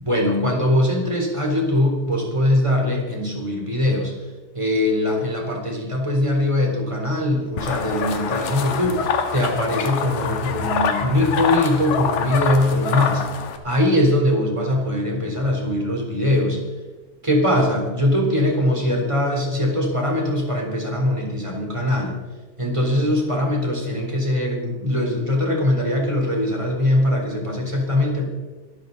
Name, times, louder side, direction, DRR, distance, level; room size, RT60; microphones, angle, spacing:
voice 1, 0.0-4.1 4.5-13.2 13.6-16.6 17.2-22.1 22.6-28.3, left 1 dB, 10° right, 0 dB, 3.1 m, -21 dB
sound 1, 7.6-13.6, left 6 dB, 60° left, 2.3 m, -25 dB
25.5 x 13.0 x 4.0 m, 1.2 s
omnidirectional pair, 4.6 m